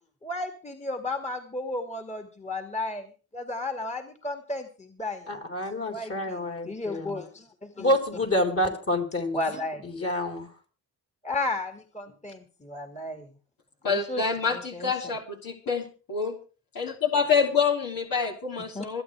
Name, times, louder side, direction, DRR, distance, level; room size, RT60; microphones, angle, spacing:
voice 1, 0.2-5.4 5.9-8.0 9.3-9.9 11.2-13.3 13.8-14.9 18.8-18.9, left 2 dB, 20° left, 5 dB, 2.2 m, -34 dB
voice 2, 5.3-7.2 7.8-9.4 9.8-10.5, left 1 dB, 40° left, 4 dB, 4.7 m, -28 dB
voice 3, 13.8-16.4 16.7-19.0, left 5 dB, 70° left, -1 dB, 3.1 m, -27 dB
26.5 x 9.0 x 3.5 m, 0.36 s
supercardioid pair, 55°, 36 cm